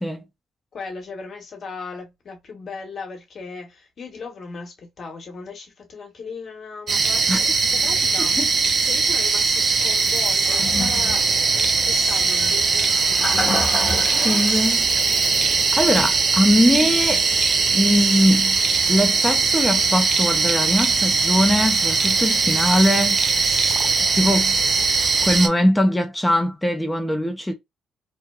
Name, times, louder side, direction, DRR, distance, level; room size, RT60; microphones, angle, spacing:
voice 1, 0.7-11.2 11.5-13.3 13.6-14.5, left 4 dB, 50° left, 1.1 m, -37 dB
sound 1, 6.9-25.5, right 4 dB, 45° right, 0.4 m, -20 dB
Toilet flush, 10.4-19.7, left 2 dB, 25° left, 0.9 m, -33 dB
voice 2, 14.2-14.8 15.8-17.2 17.7-18.6 18.9-23.2 24.0-24.6 25.2-27.5, left 1 dB, 10° left, 0.6 m, -21 dB
2.8 x 2.2 x 2.3 m
hypercardioid pair, 50°, 0 cm